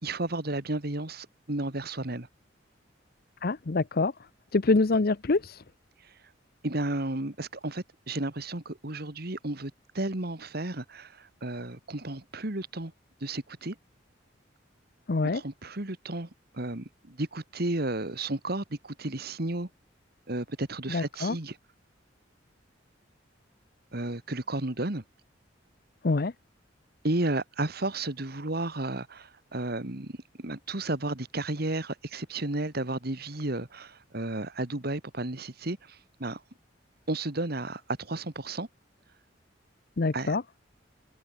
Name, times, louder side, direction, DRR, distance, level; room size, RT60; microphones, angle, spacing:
voice 1, 0.0-2.3 6.6-12.9 13.2-13.8 15.2-16.3 16.5-19.7 20.3-21.6 23.9-25.0 27.0-30.1 30.4-36.4 37.1-38.7 40.1-40.4, right 2 dB, 55° right, 2.1 m, -33 dB
voice 2, 3.4-4.1 4.5-5.4 15.1-15.4 20.9-21.4 26.0-26.3 40.0-40.4, left 3 dB, 50° left, 0.7 m, -25 dB
head